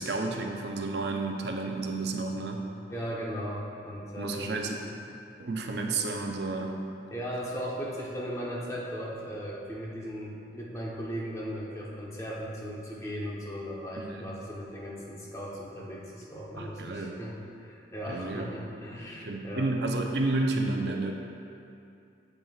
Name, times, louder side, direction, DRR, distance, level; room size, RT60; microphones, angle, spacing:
voice 1, 0.0-2.6 4.2-4.8 5.4-6.7 14.0-14.3 16.6-17.1 18.1-18.5 19.3-21.1, right 3 dB, 70° right, 2 dB, 0.6 m, -31 dB
voice 2, 2.9-4.5 7.1-19.7, equal, 15° left, -4 dB, 0.9 m, -37 dB
7.9 x 7.3 x 2.4 m, 2.6 s
head